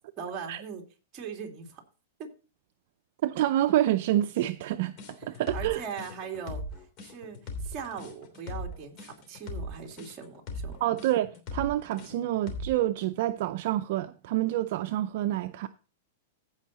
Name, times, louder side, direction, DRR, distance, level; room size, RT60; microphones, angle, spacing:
voice 1, 0.2-0.8 1.1-1.8 2.2-2.3 5.3-6.6 7.0-10.8, right 6 dB, 30° right, 2.4 m, -40 dB
voice 2, 3.2-4.9 5.2-5.8 10.8-15.7, right 13 dB, 55° right, 0.5 m, -27 dB
sound 1, 5.0-12.8, left 2 dB, 35° left, 3.1 m, -38 dB
15.5 x 5.5 x 4.0 m
supercardioid pair, 150°, 0 cm